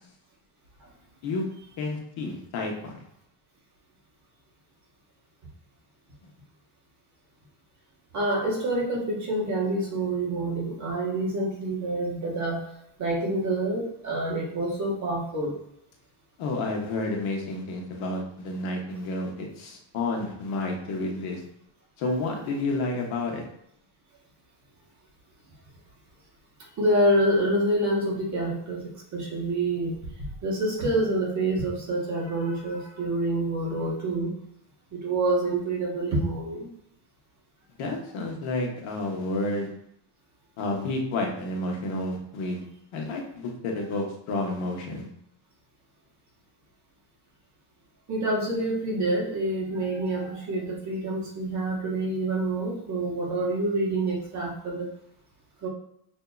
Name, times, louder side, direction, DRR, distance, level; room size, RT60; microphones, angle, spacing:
voice 1, 1.8-3.0 16.4-21.4 22.0-23.4 37.8-39.7 40.6-42.6 42.9-45.0, left 2 dB, 80° left, 0 dB, 1.1 m, -30 dB
voice 2, 8.1-12.6 13.0-15.5 26.8-28.8 29.1-30.0 30.4-34.3 34.9-36.7 48.1-54.9 55.6-55.7, right 1 dB, 35° right, -3 dB, 1.2 m, -27 dB
6.1 x 2.7 x 2.3 m, 0.74 s
cardioid pair, 155°, 49 cm